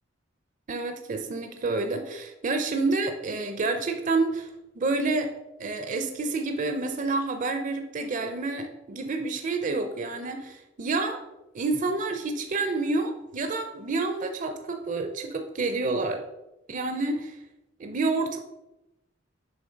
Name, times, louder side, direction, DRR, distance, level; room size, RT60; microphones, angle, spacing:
voice 1, 0.7-4.5 4.8-5.3 5.6-11.2 11.5-16.2 16.7-17.4 17.8-18.4, right 3 dB, 40° right, 6 dB, 0.5 m, -28 dB
7.0 x 3.5 x 5.1 m, 0.95 s
head